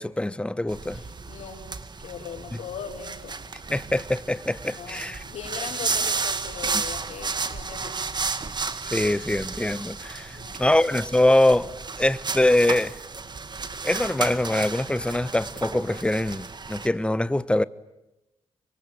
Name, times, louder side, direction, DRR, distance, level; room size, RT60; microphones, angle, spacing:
voice 1, 0.0-1.0 3.7-5.2 8.9-11.7 12.0-12.9 13.8-17.6, left 1 dB, 10° left, 1.1 m, -23 dB
sound 1, 0.7-16.9, right 4 dB, 45° right, 2.2 m, -33 dB
voice 2, 0.9-1.6 2.0-3.4 4.7-8.2 10.3-10.8, left 7 dB, 85° left, 5.8 m, -39 dB
27.0 x 23.5 x 9.2 m
cardioid pair, 60°, 11 cm